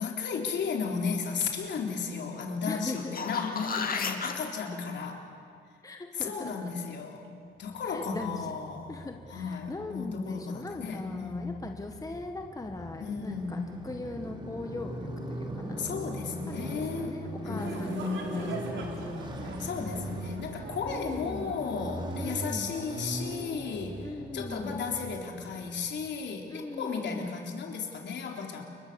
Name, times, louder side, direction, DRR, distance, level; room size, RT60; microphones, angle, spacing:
voice 1, 0.0-5.2 6.1-9.0 9.3-11.6 13.0-13.7 15.8-17.2 17.4-18.8 19.6-28.6, left 5 dB, 65° left, 2 dB, 3.9 m, -34 dB
voice 2, 2.7-3.3 5.8-6.7 7.9-8.6 8.9-15.9 16.5-20.0 20.8-21.5 22.2-22.7 24.0-24.8 26.5-27.4, left 2 dB, 15° left, 4 dB, 1.6 m, -40 dB
sound 1, 2.9-4.3 9.1-9.2, left 5 dB, 45° left, 2.5 m, -32 dB
Motorcycle, 8.0-26.2, right 1 dB, 25° right, 3.6 m, -40 dB
sound 2, 17.6-24.1, right 4 dB, 70° right, 4.0 m, -45 dB
29.5 x 23.0 x 7.0 m, 2.2 s
cardioid pair, 90°, 20 cm